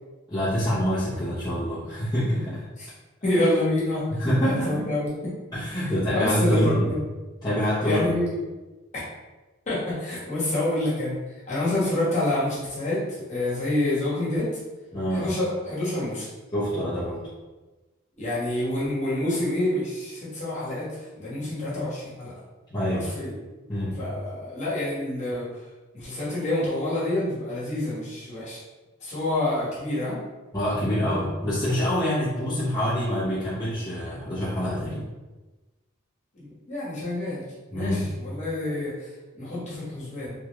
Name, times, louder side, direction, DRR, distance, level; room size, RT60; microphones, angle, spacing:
voice 1, 0.3-2.7 4.1-4.9 5.5-6.9 7.4-8.1 14.9-15.3 16.5-17.2 22.7-23.1 23.7-24.0 30.5-35.0 37.7-38.1, equal, 20° left, -13 dB, 0.9 m, -26 dB
voice 2, 3.2-4.0 4.4-5.1 6.1-7.0 7.8-8.4 8.9-9.0 9.7-14.5 15.1-16.3 18.2-22.3 23.1-23.3 24.0-25.5 25.9-28.6 29.0-30.2 36.3-37.4 37.7-39.1 39.3-40.3, left 1 dB, 35° left, -9 dB, 1.4 m, -27 dB
3.5 x 2.4 x 3.1 m, 1.2 s
head